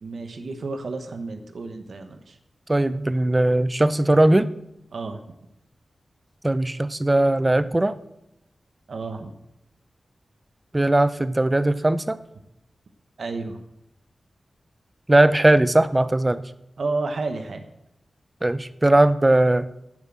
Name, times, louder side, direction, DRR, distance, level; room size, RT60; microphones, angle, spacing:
voice 1, 0.0-2.4 4.9-5.2 8.9-9.3 13.2-13.6 16.8-17.7, right 3 dB, 70° right, 7 dB, 1.1 m, -31 dB
voice 2, 2.7-4.5 6.4-7.9 10.7-12.2 15.1-16.4 18.4-19.7, right 1 dB, 20° right, 14 dB, 0.5 m, -19 dB
9.5 x 7.9 x 7.4 m, 0.86 s
wide cardioid pair, 130°, 0 cm